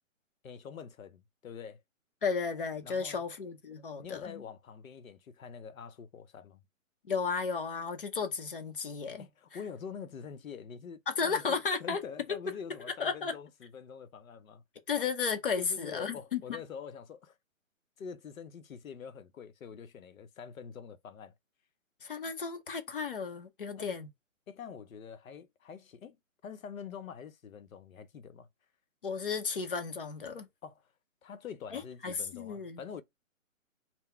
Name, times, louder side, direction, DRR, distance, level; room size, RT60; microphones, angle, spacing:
voice 1, 0.4-1.8 2.8-3.2 4.0-6.6 9.2-14.6 15.6-17.4 18.0-21.3 23.8-24.0 24.5-26.2 26.4-28.5 30.6-30.8 31.2-33.0, left 6 dB, 70° left, 0.8 m, -45 dB
voice 2, 2.2-4.4 7.0-9.3 11.1-12.0 12.9-13.4 14.9-16.4 22.0-24.1 29.0-30.5 31.7-32.8, left 5 dB, 40° left, 0.7 m, -34 dB
3.9 x 2.2 x 4.2 m
hypercardioid pair, 170°, 42 cm